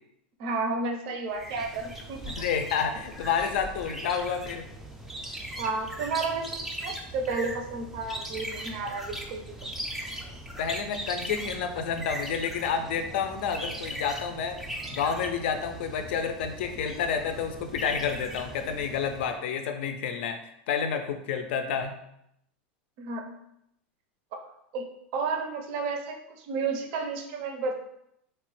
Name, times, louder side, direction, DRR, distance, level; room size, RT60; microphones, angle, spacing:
voice 1, 0.4-2.3 5.6-9.4 23.0-23.4 24.3-27.7, right 4 dB, 60° right, 4 dB, 0.5 m, -32 dB
sound 1, 1.3-19.4, right 1 dB, 5° right, 0.3 m, -39 dB
voice 2, 2.3-4.6 10.6-14.6 14.9-20.4 20.7-22.0, left 6 dB, 75° left, 7 dB, 0.4 m, -29 dB
2.9 x 2.1 x 3.0 m, 0.76 s
supercardioid pair, 120°, 6 cm